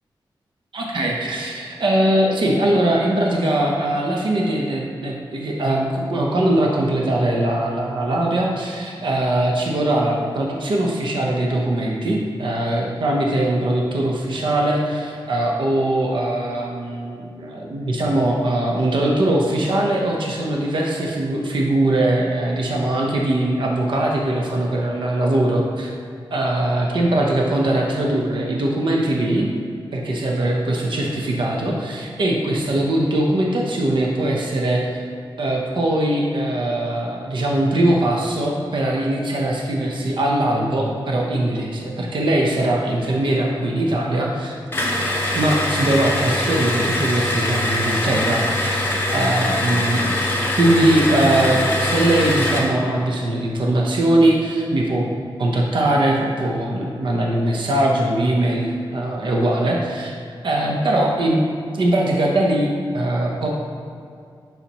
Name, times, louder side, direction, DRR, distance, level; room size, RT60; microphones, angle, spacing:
voice 1, 0.7-25.9 26.3-29.5 29.9-35.0 35.4-44.6 45.3-50.1 50.6-55.0 55.4-60.1 60.4-61.4 61.7-63.5, right 1 dB, 70° right, -1 dB, 0.8 m, -21 dB
sound 1, 44.7-52.7, left 1 dB, 25° left, 1.2 m, -22 dB
7.0 x 5.7 x 2.9 m, 2.4 s
wide cardioid pair, 95°, 9 cm